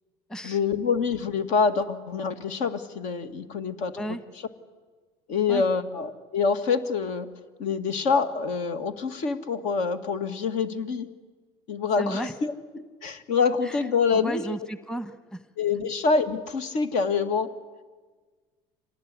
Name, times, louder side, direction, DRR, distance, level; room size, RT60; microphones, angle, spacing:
voice 1, 0.4-4.0 5.3-7.3 7.6-11.1 11.7-14.6 15.6-17.6, left 5 dB, 65° left, 11 dB, 2.2 m, -26 dB
voice 2, 12.0-12.3 13.6-13.8 14.1-15.4, equal, 5° left, 12 dB, 1.3 m, -33 dB
26.0 x 18.5 x 9.9 m, 1.4 s
supercardioid pair, 110°, 13 cm